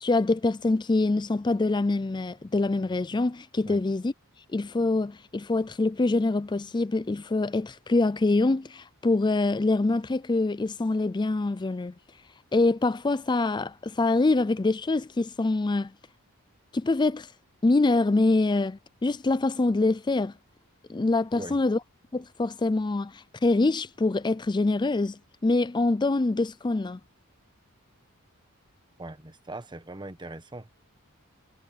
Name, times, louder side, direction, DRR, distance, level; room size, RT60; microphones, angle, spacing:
voice 1, 0.0-4.1 4.5-11.9 12.5-15.9 16.7-17.3 17.6-20.3 20.9-21.8 22.1-27.0, left 2 dB, 20° left, 0.4 m, -25 dB
voice 2, 29.0-30.7, right 2 dB, 20° right, 1.3 m, -40 dB
head